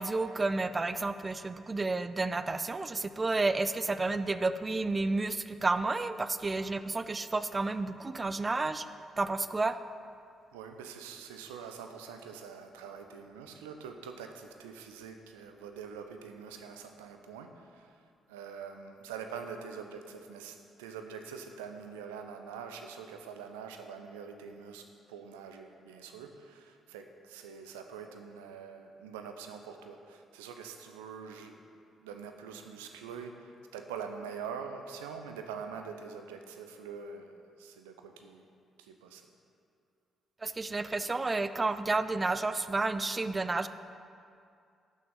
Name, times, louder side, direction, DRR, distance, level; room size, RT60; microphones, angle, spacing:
voice 1, 0.0-8.9 9.2-9.8 40.4-43.7, right 3 dB, 25° right, 12 dB, 0.5 m, -31 dB
voice 2, 10.5-18.0 18.3-31.6 32.0-38.5 38.8-39.3, right 6 dB, 70° right, 6 dB, 0.7 m, -44 dB
11.0 x 6.7 x 5.6 m, 2.4 s
figure-of-eight pair, 40°, 0 cm